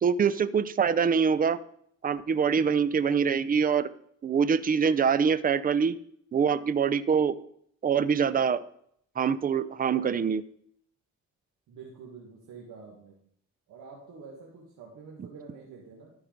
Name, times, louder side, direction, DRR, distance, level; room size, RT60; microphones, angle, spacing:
voice 1, 0.0-1.6 2.0-3.9 4.2-6.0 6.3-7.3 7.8-8.6 9.2-10.4, right 6 dB, 30° right, 16 dB, 0.5 m, -24 dB
voice 2, 11.7-13.2 13.7-16.1, right 5 dB, 85° right, -3 dB, 1.9 m, -47 dB
12.5 x 4.8 x 5.2 m, 0.68 s
cardioid pair, 90°, 30 cm